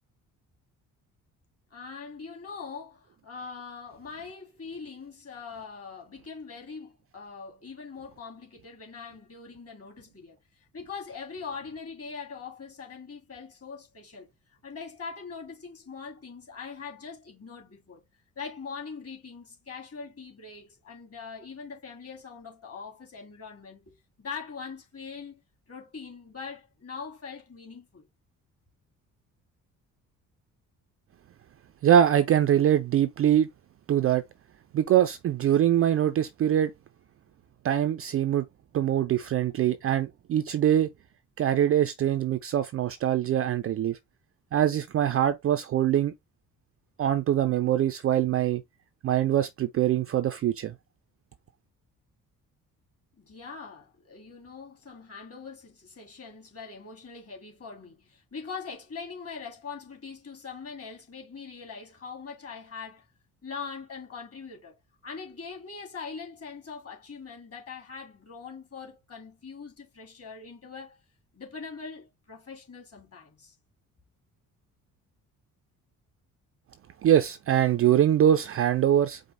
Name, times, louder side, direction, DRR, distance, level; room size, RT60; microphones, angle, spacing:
voice 1, 1.7-14.3 14.6-18.0 18.4-25.4 25.7-28.1 53.2-63.1 63.4-64.7 65.0-71.0 71.3-73.6, left 5 dB, 30° left, 2.2 m, -42 dB
voice 2, 31.8-33.5 33.9-34.2 34.7-36.7 37.6-38.4 38.7-40.9 41.4-44.0 44.5-46.1 47.0-48.6 49.0-50.7 77.0-79.2, right 10 dB, 35° right, 0.4 m, -23 dB
4.8 x 2.0 x 3.9 m
figure-of-eight pair, 45°, 44 cm